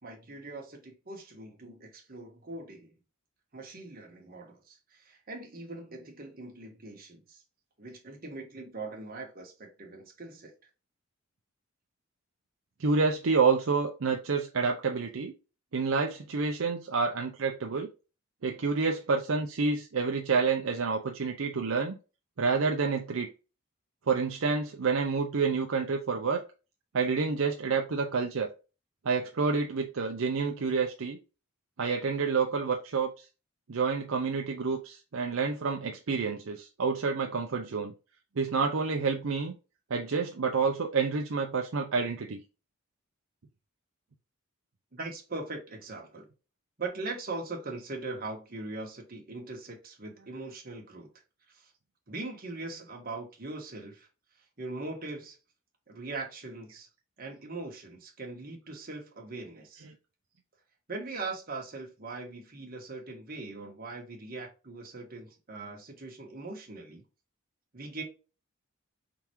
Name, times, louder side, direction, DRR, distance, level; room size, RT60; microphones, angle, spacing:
voice 1, 0.0-2.9 3.5-7.4 7.8-10.5 44.9-46.3 46.8-51.1 51.5-51.7 52.1-54.1 54.6-55.4 55.9-56.9 57.2-59.8 60.9-67.0 67.7-68.0, right 3 dB, 45° right, 1.4 m, -41 dB
voice 2, 12.8-15.3 15.7-17.9 18.4-22.0 22.4-23.3 24.1-26.4 26.9-28.5 29.0-31.2 31.8-33.2 33.7-37.9 38.4-39.5 39.9-42.4, right 4 dB, 65° right, 0.6 m, -28 dB
4.6 x 3.8 x 3.0 m
head